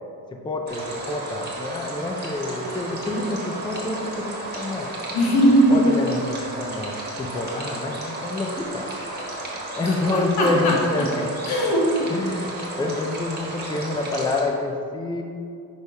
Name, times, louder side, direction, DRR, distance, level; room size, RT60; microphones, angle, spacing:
voice 1, 0.3-5.0 5.7-8.9 9.7-11.3 12.0-15.2, left 2 dB, 15° left, 2 dB, 0.4 m, -27 dB
sound 1, 0.7-14.4, right 1 dB, 25° right, 1.4 m, -33 dB
voice 2, 5.1-5.8 10.1-11.1 11.5-11.9, equal, 90° left, -2 dB, 1.5 m, -19 dB
6.2 x 3.4 x 5.4 m, 2.4 s
wide cardioid pair, 140°, 37 cm